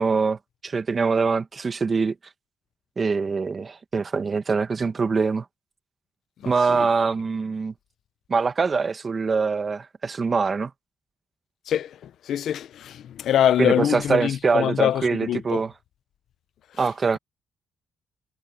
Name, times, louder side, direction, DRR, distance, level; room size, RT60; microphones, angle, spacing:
voice 1, 0.0-2.1 3.0-5.4 6.4-7.7 8.3-10.7 13.6-15.7 16.8-17.2, right 4 dB, 35° right, 1.8 m, -24 dB
voice 2, 6.4-6.9 11.7-15.6, left 10 dB, 75° left, 0.8 m, -24 dB
cardioid pair, 90°, 0 cm